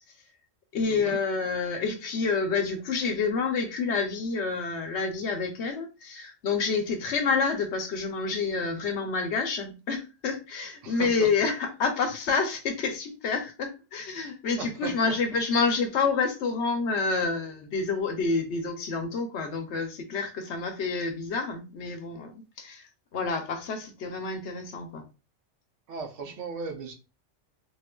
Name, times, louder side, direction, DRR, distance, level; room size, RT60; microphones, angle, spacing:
voice 1, 0.7-25.0, left 4 dB, 65° left, 0.8 m, -28 dB
voice 2, 10.8-11.3 14.6-14.9 25.9-26.9, right 5 dB, 75° right, 0.9 m, -37 dB
3.1 x 2.4 x 2.2 m
omnidirectional pair, 1.3 m